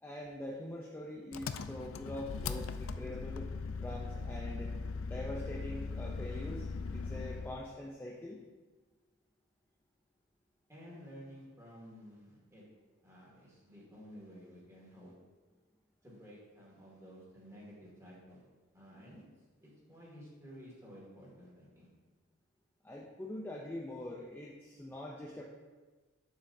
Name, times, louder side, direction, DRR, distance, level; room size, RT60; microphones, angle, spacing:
voice 1, 0.0-3.5 3.8-4.7 5.0-8.4 22.8-25.4, left 1 dB, 10° left, -3 dB, 0.5 m, -44 dB
Engine, 1.3-7.6, left 4 dB, 80° left, 0.4 m, -39 dB
voice 2, 10.7-12.6 13.0-15.1 16.0-18.4 18.7-19.2 19.6-21.9, equal, 15° right, -5 dB, 2.1 m, -53 dB
8.6 x 7.3 x 2.7 m, 1.3 s
head